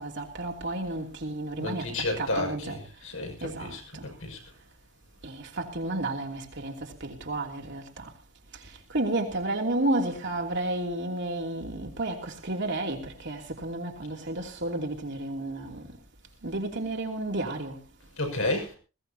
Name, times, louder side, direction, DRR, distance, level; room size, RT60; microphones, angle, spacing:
voice 1, 0.0-1.9 2.2-2.8 3.4-4.1 5.2-8.1 8.9-15.9 16.4-17.8, right 2 dB, 55° right, 3.0 m, -32 dB
voice 2, 1.6-4.4 18.2-18.8, left 2 dB, 65° left, 6.4 m, -32 dB
21.0 x 17.0 x 2.9 m
head